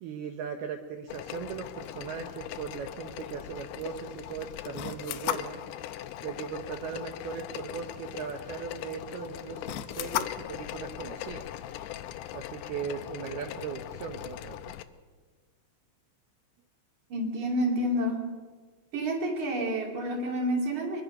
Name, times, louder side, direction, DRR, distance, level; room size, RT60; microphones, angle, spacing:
voice 1, 0.0-5.6 6.2-11.4 12.3-14.6, right 6 dB, 75° right, 4 dB, 2.3 m, -38 dB
sound 1, 1.1-14.8, left 13 dB, 85° left, 2.4 m, -38 dB
voice 2, 17.1-18.3 18.9-21.0, equal, 45° right, 1 dB, 3.5 m, -29 dB
22.5 x 22.0 x 5.4 m, 1.4 s
omnidirectional pair, 5.8 m